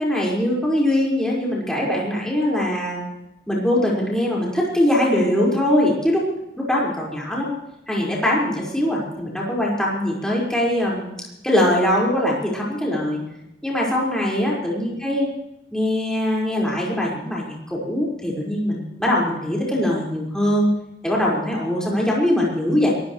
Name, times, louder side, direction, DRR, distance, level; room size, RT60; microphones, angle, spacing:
voice 1, 0.0-3.0 3.5-6.2 6.6-7.5 7.9-11.1 11.4-13.2 13.6-15.2 15.7-20.7 21.0-22.9, left 1 dB, 5° left, -5 dB, 5.3 m, -22 dB
23.0 x 17.0 x 3.3 m, 0.87 s
head